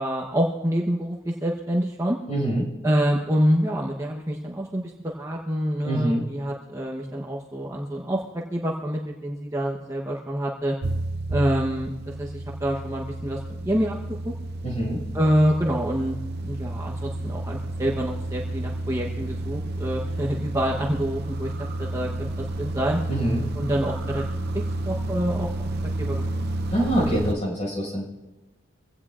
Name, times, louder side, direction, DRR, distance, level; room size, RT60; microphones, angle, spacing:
voice 1, 0.0-2.2 2.8-10.8 11.3-14.0 14.2-14.3 15.1-23.0 23.5-24.2 24.5-25.5 26.0-26.2, equal, 15° right, -2 dB, 1.0 m, -26 dB
voice 2, 2.3-2.7 5.8-6.3 14.6-15.0 23.1-23.5 26.7-28.1, right 1 dB, 35° left, -2 dB, 5.5 m, -25 dB
sound 1, 10.8-27.3, right 1 dB, 50° right, 0.6 m, -31 dB
23.5 x 16.5 x 2.5 m, 1.1 s
head